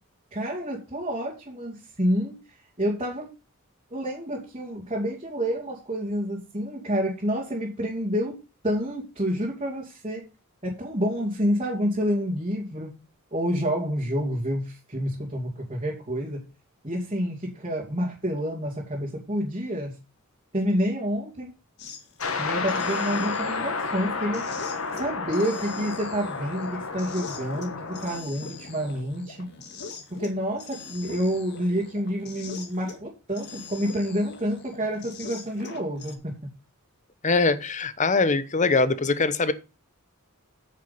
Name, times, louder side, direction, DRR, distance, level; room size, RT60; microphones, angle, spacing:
voice 1, 0.3-2.3 2.8-3.3 3.9-8.3 8.6-10.2 10.6-12.9 13.3-16.4 16.8-20.0 20.5-21.5 22.4-24.4 24.9-29.5 30.1-36.5, equal, 30° right, 2.6 m, -28 dB
sound 1, 21.8-22.3 22.6-33.0 33.3-36.1, left 4 dB, 50° left, 2.0 m, -43 dB
sound 2, 22.2-28.2, left 4 dB, 65° left, 1.6 m, -31 dB
voice 2, 37.2-39.5, left 3 dB, 35° left, 0.9 m, -22 dB
9.1 x 6.6 x 5.8 m
head